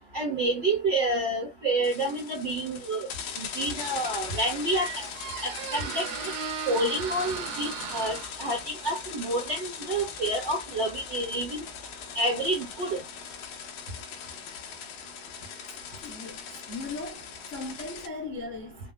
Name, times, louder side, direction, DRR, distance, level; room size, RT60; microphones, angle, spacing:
voice 1, 0.1-3.1 3.4-4.9 5.4-6.1 6.7-11.6 12.1-13.0, right 1 dB, 50° right, 1.4 m, -28 dB
sound 1, 1.8-18.1, left 7 dB, 65° left, 2.3 m, -40 dB
Squeak, 3.9-12.7, right 8 dB, 85° right, 2.8 m, -39 dB
voice 2, 16.0-18.8, left 3 dB, 40° left, 1.1 m, -38 dB
6.5 x 2.4 x 2.2 m
omnidirectional pair, 4.2 m